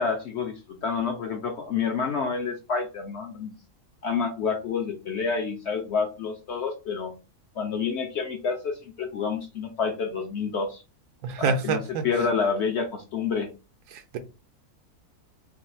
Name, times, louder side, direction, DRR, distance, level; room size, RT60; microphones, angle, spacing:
voice 1, 0.0-3.6 4.0-7.1 7.6-10.8 11.4-13.5, left 5 dB, 60° left, 0.7 m, -28 dB
voice 2, 11.2-12.3, right 5 dB, 80° right, 1.2 m, -27 dB
3.3 x 2.2 x 4.1 m
omnidirectional pair, 1.6 m